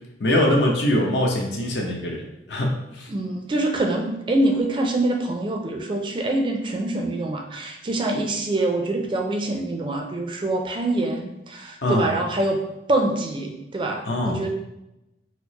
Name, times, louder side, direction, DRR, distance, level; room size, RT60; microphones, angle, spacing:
voice 1, 0.2-3.1 11.8-12.1 14.0-14.5, left 1 dB, 75° left, 1 dB, 0.7 m, -23 dB
voice 2, 3.1-12.6 12.9-14.5, right 2 dB, 30° right, 3 dB, 0.4 m, -25 dB
4.3 x 2.0 x 2.8 m, 0.89 s
head